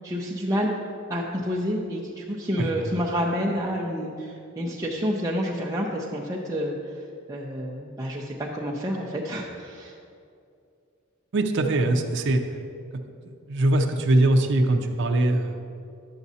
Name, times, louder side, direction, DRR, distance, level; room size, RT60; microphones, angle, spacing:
voice 1, 0.0-0.7 1.1-7.0 7.3-9.9, equal, 15° right, -4 dB, 0.5 m, -29 dB
voice 2, 11.3-12.4 12.9-15.7, right 2 dB, 60° right, 4 dB, 0.5 m, -22 dB
11.0 x 7.1 x 2.7 m, 2.4 s
head